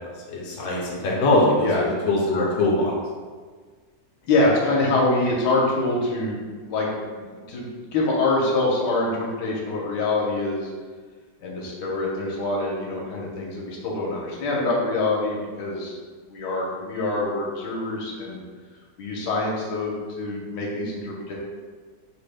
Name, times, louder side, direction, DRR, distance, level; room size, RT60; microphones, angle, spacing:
voice 1, 0.3-2.9, left 2 dB, 70° left, -3 dB, 1.2 m, -22 dB
voice 2, 4.3-6.4 6.7-10.7 11.4-15.9 16.3-18.4 19.0-19.9 20.2-21.3, left 2 dB, 85° left, -3 dB, 1.4 m, -25 dB
5.2 x 2.1 x 3.3 m, 1.5 s
omnidirectional pair, 1.8 m